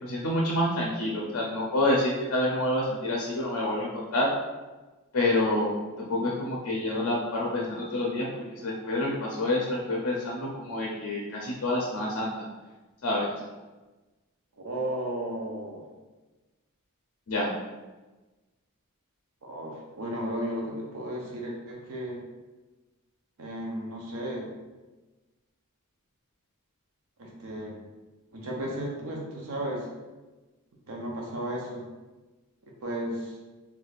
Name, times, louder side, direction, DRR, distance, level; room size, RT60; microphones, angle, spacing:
voice 1, 0.0-4.3 5.1-5.7 6.0-12.3 13.0-13.4 17.3-17.5, left 1 dB, 65° left, -3 dB, 0.6 m, -28 dB
voice 2, 14.6-15.8 19.4-22.2 23.4-24.5 27.2-27.8 28.3-29.9 30.9-31.8 32.8-33.4, right 1 dB, 65° right, -1 dB, 0.6 m, -34 dB
3.4 x 3.2 x 2.4 m, 1.2 s
head